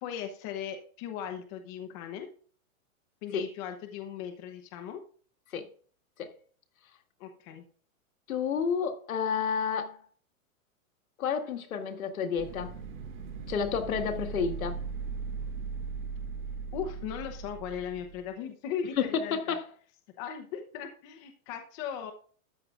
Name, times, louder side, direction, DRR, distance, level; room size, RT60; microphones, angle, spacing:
voice 1, 0.0-2.3 3.2-5.0 7.2-7.6 16.7-19.6 20.2-22.1, left 8 dB, 25° left, 0.9 m, -38 dB
voice 2, 8.3-10.0 11.2-12.8 13.5-14.8 19.0-19.7, left 6 dB, 85° left, 1.9 m, -30 dB
sound 1, 12.4-18.3, right 5 dB, 60° right, 5.1 m, -38 dB
13.5 x 9.0 x 2.5 m
supercardioid pair, 165°, 42 cm